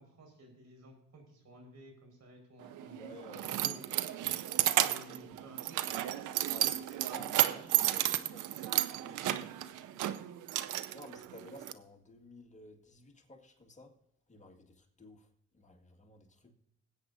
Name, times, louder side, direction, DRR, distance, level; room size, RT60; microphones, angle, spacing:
voice 1, 0.0-3.8 4.8-6.1 7.3-8.4, right 1 dB, 60° right, 5.1 m, -55 dB
Keys jangling, 2.6-11.7, right 13 dB, 90° right, 0.6 m, -33 dB
voice 2, 2.9-3.8 6.4-8.4 8.9-9.5 10.9-13.9 14.3-15.3 15.5-16.5, left 1 dB, 25° left, 2.0 m, -54 dB
20.0 x 8.9 x 2.7 m
cardioid pair, 90°, 30 cm